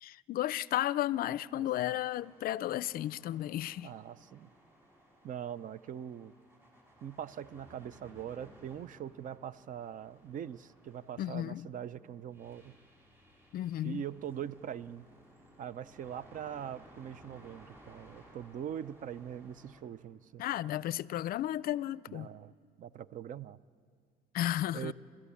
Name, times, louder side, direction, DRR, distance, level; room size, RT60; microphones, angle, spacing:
voice 1, 0.0-3.9 11.2-11.7 13.5-14.0 20.4-22.3 24.3-24.9, left 13 dB, 60° left, 0.5 m, -33 dB
sound 1, 1.1-19.8, right 1 dB, 15° right, 5.8 m, -60 dB
voice 2, 3.8-4.5 5.2-6.3 7.0-12.7 13.8-15.1 15.6-20.4 22.1-22.5 22.8-23.6 24.7-24.9, right 9 dB, 50° right, 0.6 m, -42 dB
29.5 x 13.0 x 8.5 m
cardioid pair, 110°, 17 cm